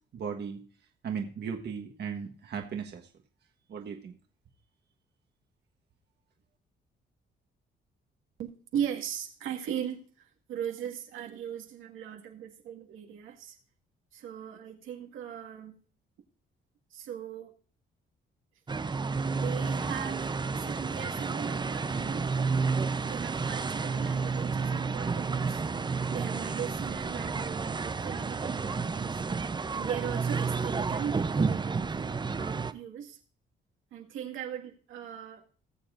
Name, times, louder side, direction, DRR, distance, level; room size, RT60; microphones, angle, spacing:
voice 1, 0.1-0.6 1.0-3.1 3.7-4.1, right 6 dB, 55° right, 2 dB, 1.4 m, -36 dB
voice 2, 8.4-13.6 14.1-15.8 16.9-17.5 19.3-20.3 20.6-22.7 23.0-25.6 26.1-29.2 29.7-33.2 33.9-35.4, right 9 dB, 85° right, 2 dB, 1.9 m, -39 dB
sound 1, 18.7-32.7, right 4 dB, 20° right, 0.6 m, -31 dB
19.0 x 7.1 x 2.6 m, 0.42 s
cardioid pair, 90°, 20 cm